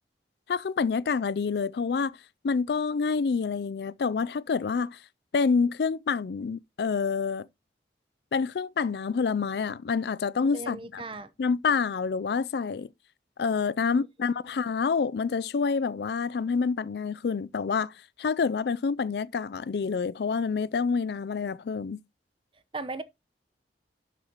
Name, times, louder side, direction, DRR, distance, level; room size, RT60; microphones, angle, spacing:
voice 1, 0.5-2.2 2.4-5.0 5.3-7.4 8.3-11.0 11.4-12.9 13.4-17.9 18.2-22.0, left 5 dB, 65° left, 0.4 m, -27 dB
voice 2, 10.4-11.3 22.7-23.0, right 3 dB, 30° right, 0.8 m, -37 dB
11.5 x 7.5 x 3.0 m
head